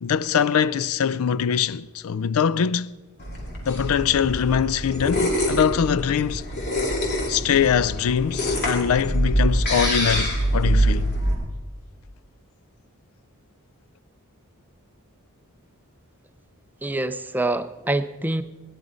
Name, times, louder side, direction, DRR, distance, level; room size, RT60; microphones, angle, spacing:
voice 1, 0.0-2.9 3.6-6.5 7.3-11.1, left 7 dB, 70° left, 0.4 m, -22 dB
sound 1, 3.2-11.3, equal, 50° left, 2.9 m, -24 dB
voice 2, 16.8-18.4, right 2 dB, 10° right, 0.4 m, -25 dB
17.5 x 10.5 x 5.0 m
head